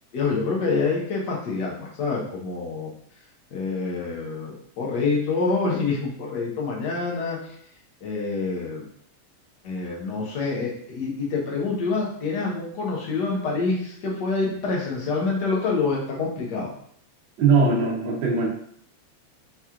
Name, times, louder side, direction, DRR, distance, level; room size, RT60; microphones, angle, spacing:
voice 1, 0.1-2.9 3.5-7.5 8.0-8.8 9.6-16.7, left 4 dB, 75° left, -3 dB, 0.9 m, -26 dB
voice 2, 17.4-18.5, right 4 dB, 65° right, -3 dB, 1.1 m, -20 dB
4.7 x 2.9 x 3.7 m, 0.65 s
omnidirectional pair, 3.3 m